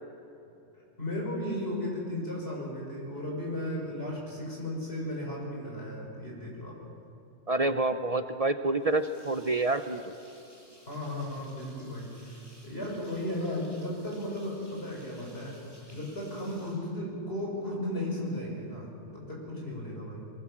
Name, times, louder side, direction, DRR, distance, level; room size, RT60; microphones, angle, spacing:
voice 1, 1.0-6.7 10.9-20.2, left 1 dB, 55° left, -3 dB, 6.4 m, -35 dB
voice 2, 7.5-10.1, right 2 dB, 40° right, 9 dB, 0.7 m, -28 dB
sound 1, 8.8-17.6, equal, 20° left, 7.0 m, -57 dB
23.0 x 19.5 x 7.5 m, 2.9 s
omnidirectional pair, 1.3 m